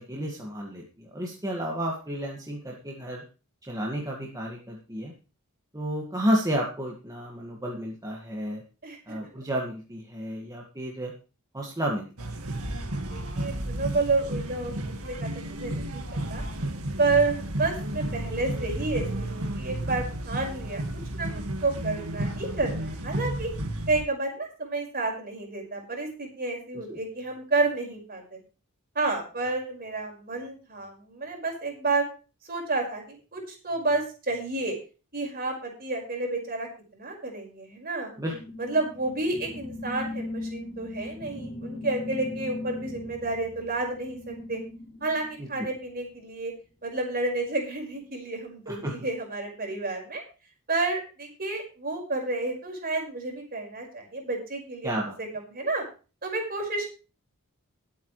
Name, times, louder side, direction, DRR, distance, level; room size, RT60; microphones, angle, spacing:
voice 1, 0.0-3.2 3.6-5.1 5.7-8.6 9.1-11.1 11.5-12.3 26.7-27.0 38.2-38.3 45.4-45.5 48.7-49.1 54.8-55.2, equal, 15° right, -2 dB, 2.0 m, -31 dB
sound 1, 12.2-24.0, right 1 dB, 70° right, 1.9 m, -32 dB
voice 2, 13.0-16.0 16.3-16.5 17.0-20.8 21.1-23.5 23.9-28.4 29.0-32.0 32.5-34.8 35.1-38.1 38.6-44.6 45.0-46.5 46.8-50.2 50.7-54.9 55.5-55.8 56.2-56.9, right 3 dB, 45° right, 1 dB, 5.2 m, -30 dB
sound 2, 38.3-46.1, left 2 dB, 35° left, 3.2 m, -39 dB
21.0 x 8.6 x 3.3 m, 0.34 s
head